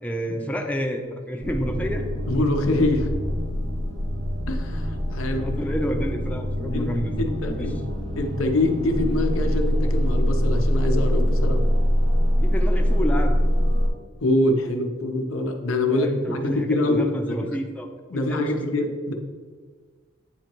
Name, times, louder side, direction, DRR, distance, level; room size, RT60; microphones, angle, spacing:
voice 1, 0.0-2.0 5.4-7.7 12.3-13.4 15.9-18.7, equal, 5° left, 2 dB, 0.5 m, -29 dB
sound 1, 1.4-13.9, equal, 60° right, 0.9 m, -24 dB
voice 2, 2.3-3.1 4.5-5.5 6.7-6.9 7.2-7.8 8.1-11.6 14.2-17.5 18.1-19.1, left 2 dB, 85° left, 4 dB, 0.7 m, -24 dB
8.6 x 3.0 x 4.4 m, 1.5 s
head